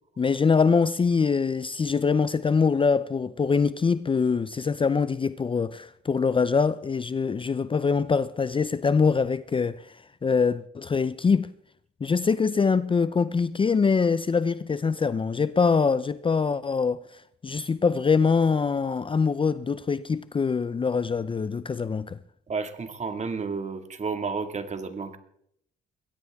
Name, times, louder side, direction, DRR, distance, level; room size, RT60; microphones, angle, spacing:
voice 1, 0.2-11.5 12.0-22.2, left 5 dB, 25° left, 0.5 m, -24 dB
voice 2, 22.5-25.2, right 4 dB, 35° right, 2.0 m, -31 dB
22.0 x 17.0 x 3.5 m
cardioid pair, 90°, 20 cm